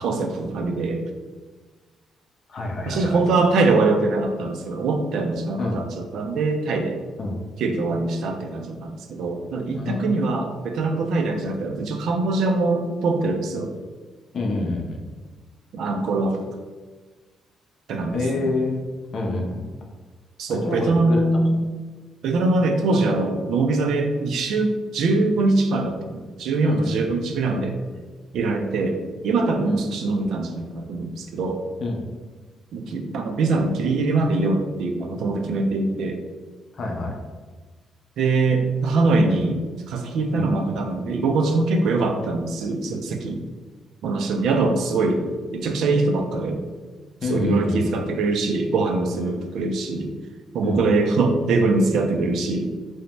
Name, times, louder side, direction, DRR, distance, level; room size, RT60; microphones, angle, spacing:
voice 1, 0.0-1.0 2.9-7.0 7.6-13.7 15.7-16.4 17.9-18.5 20.4-21.6 22.2-27.8 28.3-31.6 32.7-36.2 38.2-39.6 39.9-43.4 44.0-45.2 45.5-46.6 47.3-50.1 50.5-52.7, right 3 dB, 75° right, 4 dB, 0.3 m, -23 dB
voice 2, 2.5-3.2 5.6-5.8 7.2-7.4 9.7-10.1 14.3-15.0 18.1-18.8 19.1-19.6 20.5-21.2 26.6-27.1 27.9-28.0 29.6-29.8 31.8-32.1 36.7-37.2 40.3-40.4 47.2-48.0 49.2-49.4 50.6-50.8, left 2 dB, 50° left, 1 dB, 0.5 m, -27 dB
2.6 x 2.0 x 3.0 m, 1.3 s
cardioid pair, 90°, 0 cm